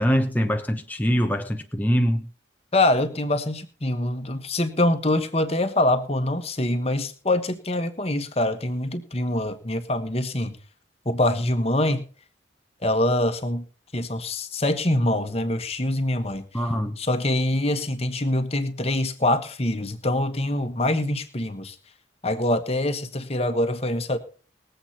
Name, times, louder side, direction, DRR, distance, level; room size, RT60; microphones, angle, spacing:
voice 1, 0.0-2.3 16.5-17.0, equal, 10° left, 1.0 m, -23 dB
voice 2, 2.7-10.6 11.0-12.0 12.8-13.6 13.9-16.4 17.0-21.8 22.2-24.2, left 1 dB, 35° left, 1.4 m, -24 dB
20.5 x 8.0 x 4.3 m
head